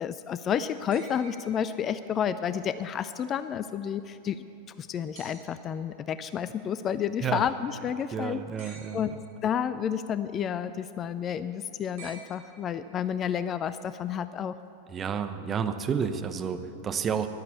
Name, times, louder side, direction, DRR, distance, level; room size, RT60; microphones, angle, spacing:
voice 1, 0.0-4.4 4.8-9.1 9.4-14.6, left 8 dB, 30° left, 13 dB, 0.4 m, -30 dB
sound 1, 0.9-2.3 5.1-5.8 8.6-9.4 12.0-13.0 14.6-14.7, right 4 dB, 55° right, 4.0 m, -50 dB
voice 2, 8.1-9.0 14.9-17.3, right 7 dB, 25° right, 8 dB, 0.9 m, -30 dB
14.5 x 11.0 x 8.2 m, 2.7 s
figure-of-eight pair, 90°, 0 cm